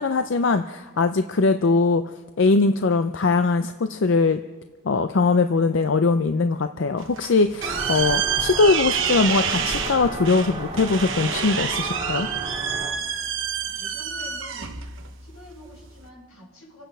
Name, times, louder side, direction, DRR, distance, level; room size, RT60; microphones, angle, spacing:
voice 1, 0.0-4.4 4.8-12.3, left 3 dB, 55° left, 9 dB, 0.5 m, -21 dB
sound 1, 7.0-16.1, right 8 dB, 60° right, 1.0 m, -28 dB
sound 2, 7.6-12.9, right 1 dB, 20° right, 3.2 m, -33 dB
voice 2, 13.7-14.8 15.2-16.8, left 1 dB, 80° left, -2 dB, 6.3 m, -46 dB
27.0 x 9.1 x 5.5 m, 1.4 s
head